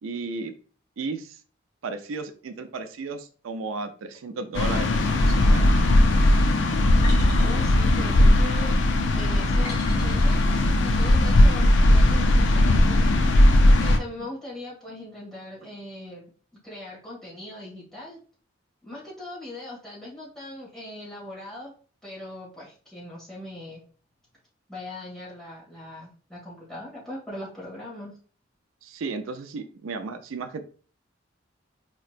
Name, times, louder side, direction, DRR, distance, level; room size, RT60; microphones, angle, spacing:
voice 1, 0.0-0.5 1.0-1.4 1.8-6.0 14.2-14.3 28.8-30.6, right 4 dB, 90° right, 8 dB, 0.4 m, -34 dB
sound 1, 4.5-14.0, left 1 dB, 70° left, 0.5 m, -18 dB
sound 2, 7.0-8.7 9.6-10.6, left 2 dB, 35° left, 1.7 m, -42 dB
voice 2, 7.2-8.8 9.1-16.3 16.6-18.2 18.8-21.7 22.0-23.8 24.7-28.1, left 1 dB, 5° left, -7 dB, 1.8 m, -40 dB
4.3 x 2.9 x 2.4 m, 0.41 s
head